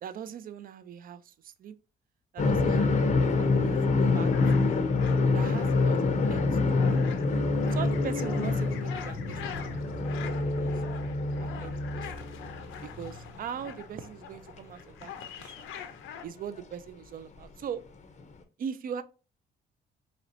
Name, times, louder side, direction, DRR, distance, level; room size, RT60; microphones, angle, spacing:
voice 1, 0.0-1.7 2.3-4.8 5.3-6.4 6.9-7.0 7.7-11.0 11.4-12.3 12.8-15.6 16.2-17.8 18.6-19.0, right 8 dB, 45° right, 0.4 m, -41 dB
sound 1, 2.4-13.4 13.7-13.8 15.0-15.1 16.6-16.7 18.2-18.3, left 3 dB, 35° left, 0.5 m, -26 dB
sound 2, 3.6-16.2, left 8 dB, 85° left, 0.5 m, -45 dB
3.1 x 2.9 x 2.5 m
cardioid pair, 90°, 20 cm